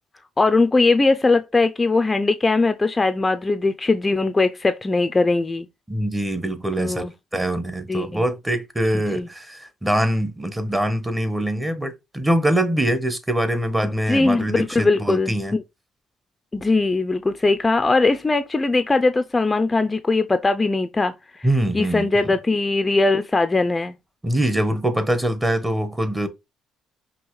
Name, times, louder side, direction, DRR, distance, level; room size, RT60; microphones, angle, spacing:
voice 1, 0.4-5.7 6.8-7.4 7.9-8.2 9.1-9.3 13.8-15.6 16.5-21.5 21.7-23.9, left 3 dB, 25° left, 0.4 m, -20 dB
voice 2, 5.9-7.1 7.3-15.5 21.4-22.4 24.2-26.3, right 1 dB, 15° right, 1.0 m, -23 dB
5.4 x 2.9 x 3.1 m
supercardioid pair, 70°, 0 cm